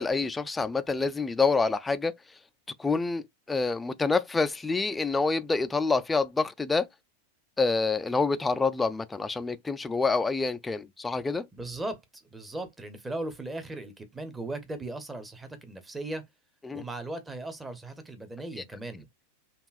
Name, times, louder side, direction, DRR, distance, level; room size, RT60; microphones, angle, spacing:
voice 1, 0.0-2.2 2.8-6.9 7.6-11.5 16.6-16.8, left 4 dB, 10° left, 0.3 m, -27 dB
voice 2, 11.5-12.0 12.3-16.2 16.7-19.1, right 2 dB, 10° right, 0.8 m, -37 dB
5.3 x 2.3 x 2.4 m
figure-of-eight pair, 90°, 0 cm